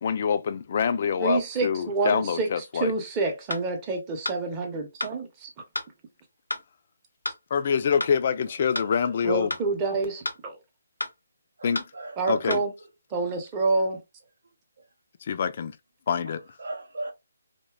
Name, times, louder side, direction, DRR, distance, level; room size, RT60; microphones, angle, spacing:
voice 1, 0.0-2.9 7.5-9.5 11.6-11.8 12.3-12.6 15.2-15.8 16.1-16.4, left 7 dB, 45° left, 0.3 m, -25 dB
voice 2, 1.2-5.5 9.2-10.6 12.2-12.7 13.1-14.0, right 3 dB, 20° right, 0.6 m, -28 dB
sound 1, 3.5-3.6 4.2-4.4 5.0-5.1 5.7-5.9 6.5-6.6 7.2-7.4 8.0-8.1 8.7-8.9 9.5-9.6 10.2-10.4 11.0-11.1 11.7-11.9 12.5-12.6, left 2 dB, 90° left, 0.6 m, -31 dB
voice 3, 11.6-12.4 16.3-17.1, right 2 dB, 70° right, 0.5 m, -38 dB
2.7 x 2.1 x 2.2 m
figure-of-eight pair, 150°, 0 cm